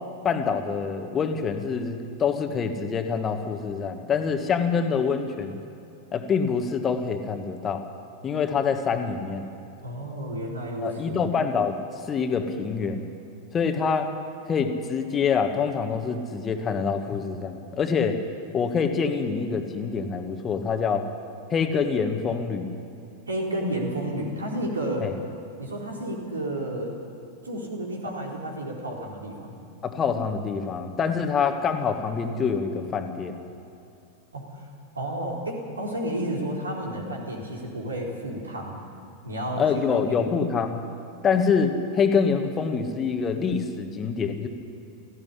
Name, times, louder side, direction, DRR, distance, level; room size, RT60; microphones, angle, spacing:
voice 1, 0.2-5.6 6.1-7.8 8.2-9.5 10.8-11.7 12.1-13.1 13.5-14.1 14.5-18.2 18.5-21.1 21.5-22.7 25.0-25.1 29.8-33.4 39.6-40.8 41.2-44.5, left 6 dB, 25° left, 6 dB, 1.6 m, -25 dB
voice 2, 9.8-11.2 23.3-25.1 25.6-27.0 27.4-29.6 34.3-34.5 34.9-38.8 39.2-39.6 39.9-40.2, right 1 dB, 75° right, -1 dB, 4.0 m, -31 dB
17.5 x 15.0 x 9.9 m, 2.7 s
figure-of-eight pair, 90°, 0 cm